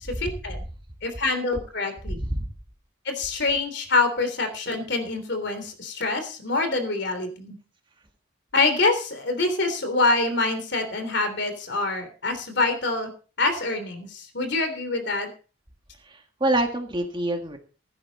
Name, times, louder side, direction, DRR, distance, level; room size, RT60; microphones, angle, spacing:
voice 1, 0.2-0.6 1.0-2.2 3.0-7.6 8.5-13.1 13.4-15.3, left 3 dB, 55° left, 8 dB, 3.4 m, -25 dB
voice 2, 2.1-2.5 16.1-17.6, right 1 dB, 25° right, 4 dB, 1.7 m, -26 dB
16.0 x 11.0 x 4.1 m, 0.38 s
head